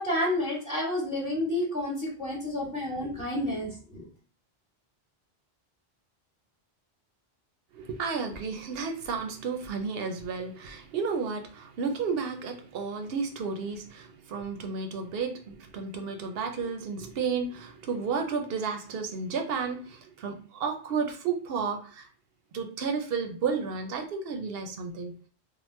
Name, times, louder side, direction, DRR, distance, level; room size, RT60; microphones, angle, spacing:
voice 1, 0.0-4.0, left 1 dB, 5° right, -7 dB, 1.0 m, -30 dB
voice 2, 7.7-22.1 22.5-25.1, right 5 dB, 75° right, 5 dB, 0.8 m, -32 dB
3.0 x 2.1 x 3.1 m, 0.42 s
omnidirectional pair, 1.0 m